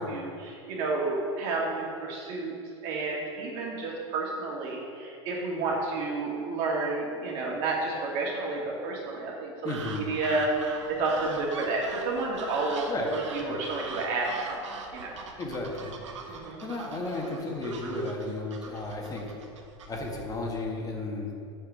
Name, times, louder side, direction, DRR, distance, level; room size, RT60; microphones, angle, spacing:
voice 1, 0.0-2.5 2.8-14.6 14.9-15.1 16.3-16.6, right 3 dB, 55° right, -3 dB, 2.3 m, -30 dB
voice 2, 9.6-10.1 12.9-13.1 13.4-13.6 15.4-15.9 16.2-19.3 19.9-21.3, left 2 dB, 25° left, 0 dB, 2.0 m, -34 dB
sound 1, 9.7-20.4, right 4 dB, 85° right, 1.0 m, -43 dB
7.0 x 5.7 x 7.1 m, 2.5 s
hypercardioid pair, 95°, 15 cm